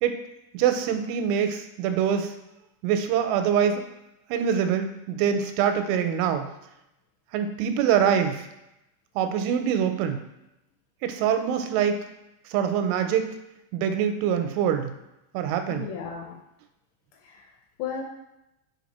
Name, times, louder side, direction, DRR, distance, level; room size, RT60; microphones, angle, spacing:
voice 1, 0.5-2.3 2.8-3.8 4.3-6.5 7.3-8.5 9.2-10.2 11.0-12.0 12.5-13.3 13.7-14.9 15.3-15.9, right 8 dB, 85° right, 7 dB, 3.0 m, -24 dB
voice 2, 15.7-16.4 17.1-18.0, left 7 dB, 80° left, 1 dB, 2.7 m, -35 dB
6.5 x 4.7 x 4.1 m, 0.88 s
omnidirectional pair, 5.5 m